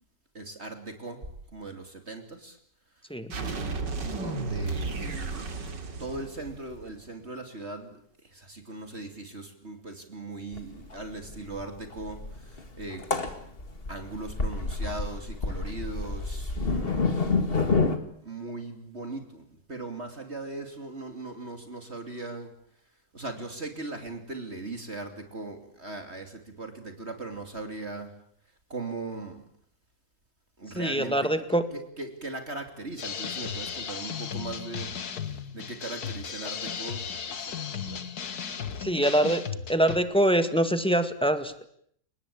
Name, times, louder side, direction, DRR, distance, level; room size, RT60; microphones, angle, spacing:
voice 1, 0.3-2.6 3.0-3.1 3.3-5.6 6.0-13.5 13.9-17.3 18.2-22.5 23.1-28.2 28.7-29.4 30.6-34.9 35.2-38.0, right 2 dB, 35° right, 6 dB, 3.1 m, -39 dB
sound 1, 3.3-7.0, right 3 dB, 85° right, 3.2 m, -33 dB
sound 2, 10.5-10.7 10.9-11.0 11.2-18.0, left 4 dB, 35° left, 2.2 m, -28 dB
voice 2, 30.7-31.6 38.8-39.4 39.7-41.6, right 1 dB, 5° left, 9 dB, 1.8 m, -24 dB
sound 3, 33.0-40.0, left 7 dB, 60° left, 2.0 m, -35 dB
30.0 x 19.0 x 8.6 m, 0.66 s
omnidirectional pair, 1.9 m